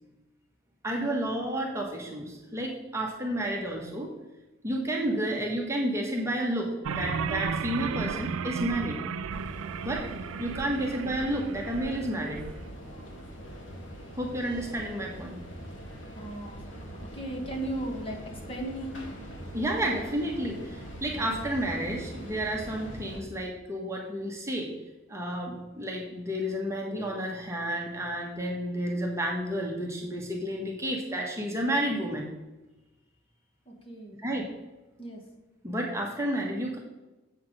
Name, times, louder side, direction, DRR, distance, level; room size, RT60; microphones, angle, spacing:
voice 1, 0.8-4.1 4.6-9.0 9.8-10.1 10.4-12.4 14.2-15.4 19.5-24.7 25.1-32.3 34.2-34.5 35.6-36.8, right 1 dB, 15° right, -1 dB, 1.2 m, -31 dB
sound 1, 6.8-12.5, right 6 dB, 85° right, 0.4 m, -34 dB
sound 2, 9.3-23.2, equal, 60° left, 1.8 m, -43 dB
voice 2, 16.1-16.6 17.1-19.0 33.7-34.2 35.0-35.2, right 1 dB, 25° left, 1 dB, 1.4 m, -36 dB
7.6 x 5.8 x 6.2 m, 1.1 s
head